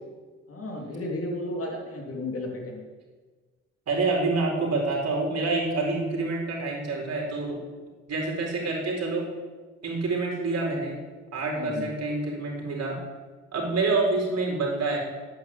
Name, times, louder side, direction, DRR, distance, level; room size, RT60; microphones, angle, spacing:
voice 1, 0.5-2.9 11.5-11.9, left 1 dB, 50° left, 0 dB, 3.5 m, -33 dB
voice 2, 3.9-7.6 8.1-9.3 9.8-11.0 11.3-13.0 13.5-15.0, right 3 dB, 55° right, -2 dB, 4.6 m, -27 dB
9.1 x 8.9 x 8.8 m, 1.4 s
cardioid pair, 90°, 30 cm